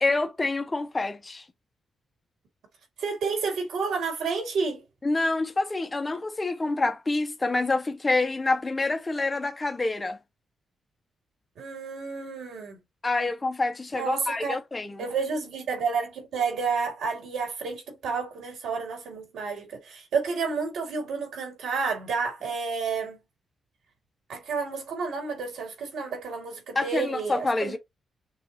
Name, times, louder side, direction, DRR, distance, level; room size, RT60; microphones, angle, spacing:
voice 1, 0.0-1.4 5.0-10.2 13.0-15.0 26.8-27.8, left 3 dB, 20° left, 0.5 m, -27 dB
voice 2, 3.0-4.8 11.6-12.8 13.9-14.6 15.0-23.2 24.3-27.8, right 5 dB, 90° right, 2.2 m, -30 dB
6.2 x 2.3 x 2.9 m
wide cardioid pair, 140°, 0 cm